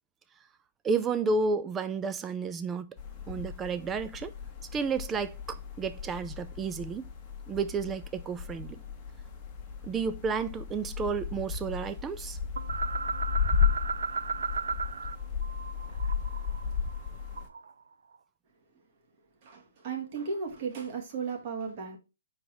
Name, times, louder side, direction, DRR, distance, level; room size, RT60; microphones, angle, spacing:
voice 1, 0.8-2.9 3.3-4.3 4.7-7.1 7.5-8.8 9.8-12.4, right 4 dB, 15° right, 0.5 m, -31 dB
sound 1, 3.0-17.5, left 6 dB, 15° left, 1.3 m, -34 dB
sound 2, 12.6-15.2 15.4-17.7, right 5 dB, 80° right, 0.5 m, -35 dB
voice 2, 19.4-22.0, right 5 dB, 40° right, 2.1 m, -35 dB
4.7 x 4.7 x 5.2 m
hypercardioid pair, 155°, 0 cm